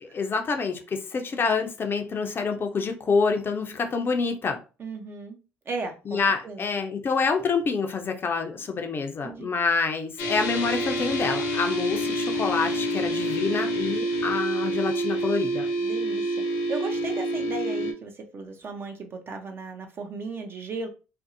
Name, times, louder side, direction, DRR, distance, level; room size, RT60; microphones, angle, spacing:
voice 1, 0.0-4.6 6.1-15.7, left 4 dB, 40° left, 0.5 m, -27 dB
voice 2, 4.8-5.4 5.7-6.7 9.2-9.5 15.8-20.9, right 3 dB, 40° right, 0.6 m, -36 dB
sound 1, 10.2-17.9, right 1 dB, 80° left, 0.7 m, -27 dB
2.6 x 2.0 x 2.6 m
hypercardioid pair, 65°, 6 cm